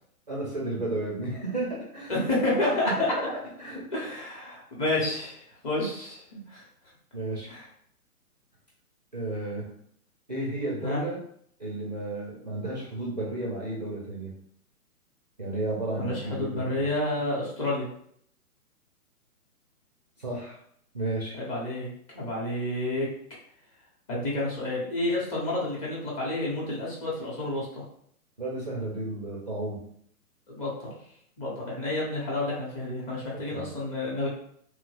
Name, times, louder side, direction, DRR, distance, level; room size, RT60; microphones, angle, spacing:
voice 1, 0.3-2.2 2.7-3.3 3.6-3.8 7.1-7.5 9.1-9.7 10.3-11.2 11.6-14.3 15.4-16.9 20.2-20.6 20.9-21.4 28.4-29.8 33.5-33.7, right 2 dB, 30° right, -4 dB, 0.4 m, -33 dB
voice 2, 2.1-3.1 3.9-6.2 6.5-6.6 7.5-7.6 10.8-11.0 16.0-17.9 21.3-21.9 22.1-23.1 24.1-27.8 30.5-30.9 31.4-34.3, left 2 dB, 20° left, -5 dB, 0.8 m, -29 dB
3.1 x 2.1 x 3.1 m, 0.66 s
hypercardioid pair, 150°, 46 cm